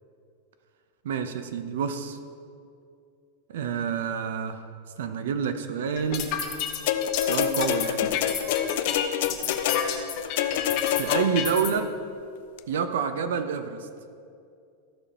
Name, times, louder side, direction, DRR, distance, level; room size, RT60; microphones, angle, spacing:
voice 1, 1.0-2.2 3.5-4.6 5.0-6.3 7.3-8.1 10.9-11.9 12.7-13.9, right 7 dB, 75° right, 9 dB, 0.7 m, -28 dB
sound 1, 6.0-11.7, left 8 dB, 35° left, 0.9 m, -30 dB
sound 2, 6.9-11.6 12.6-12.7, left 10 dB, 50° left, 0.4 m, -27 dB
14.0 x 5.2 x 4.3 m, 2.4 s
supercardioid pair, 175°, 0 cm